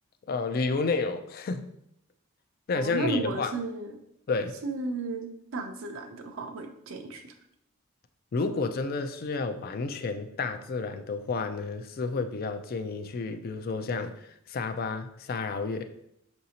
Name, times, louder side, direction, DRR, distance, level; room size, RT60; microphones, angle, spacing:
voice 1, 0.3-1.7 2.7-3.5 4.3-4.6 8.3-15.9, left 4 dB, 45° left, 8 dB, 0.3 m, -31 dB
voice 2, 2.7-4.0 4.6-7.3, right 3 dB, 75° right, 5 dB, 0.5 m, -34 dB
5.6 x 2.6 x 2.8 m, 0.74 s
head